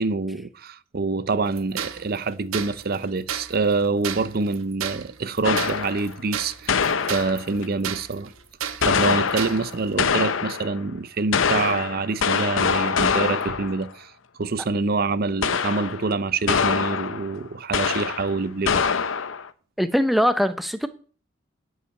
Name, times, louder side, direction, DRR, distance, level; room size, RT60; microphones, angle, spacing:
voice 1, 0.0-6.8 7.1-8.3 8.8-14.1 14.4-18.8, right 3 dB, 45° right, 0.5 m, -26 dB
sound 1, 1.5-9.9, right 9 dB, 75° right, 0.9 m, -33 dB
sound 2, 5.4-6.1 6.7-7.7 8.8-10.8 11.3-13.8 15.4-16.1 16.5-17.3 17.7-18.4 18.7-19.5, left 6 dB, 65° left, 0.7 m, -24 dB
voice 2, 19.8-20.9, equal, ahead, 0.5 m, -21 dB
11.0 x 5.7 x 8.7 m
head